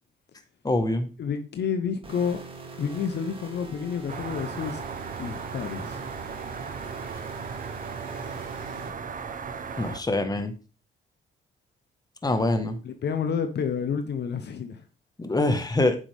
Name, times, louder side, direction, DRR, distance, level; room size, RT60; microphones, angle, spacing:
voice 1, 0.6-1.1 9.8-10.5 12.2-12.8 15.2-16.0, left 2 dB, 20° left, 1.7 m, -24 dB
voice 2, 1.2-2.4 2.8-4.9 5.2-6.1 12.8-14.8, left 6 dB, 60° left, 1.1 m, -29 dB
sound 1, 2.0-8.9, right 4 dB, 25° right, 2.3 m, -43 dB
sound 2, 4.1-10.0, right 5 dB, 40° right, 1.1 m, -36 dB
9.3 x 6.9 x 3.7 m
cardioid pair, 90°, 20 cm